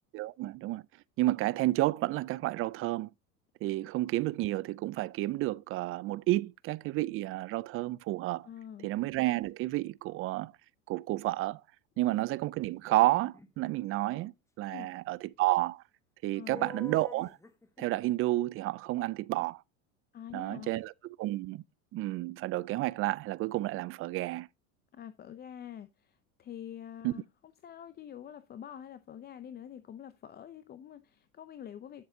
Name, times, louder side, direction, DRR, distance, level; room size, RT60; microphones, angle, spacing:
voice 1, 0.1-0.8 1.2-3.1 3.6-8.5 8.8-10.5 10.9-11.6 12.0-15.8 16.2-17.4 17.8-19.6 20.3-20.9 21.2-21.6 21.9-24.5 27.0-27.1, right 17 dB, 35° right, 0.4 m, -31 dB
voice 2, 8.4-8.9 14.7-14.9 16.3-16.7 20.1-20.8 24.9-32.0, left 9 dB, 25° left, 0.6 m, -46 dB
sound 1, 12.9-13.5 16.5-18.0, equal, 5° left, 1.0 m, -46 dB
9.4 x 7.6 x 2.7 m
supercardioid pair, 110°, 40 cm